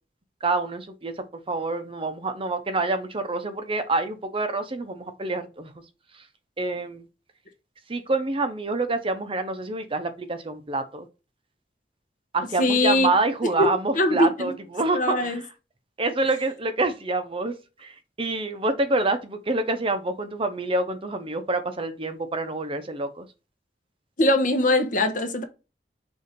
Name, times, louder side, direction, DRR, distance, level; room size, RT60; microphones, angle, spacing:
voice 1, 0.4-5.7 6.1-6.2 6.6-7.0 7.9-11.1 12.3-15.4 16.0-17.5 17.8-23.3, right 2 dB, 30° right, 0.8 m, -27 dB
voice 2, 12.6-13.1 13.6-13.7 13.9-14.5 14.9-15.4 24.2-25.4, left 1 dB, 50° left, 1.2 m, -21 dB
6.6 x 2.8 x 5.2 m
head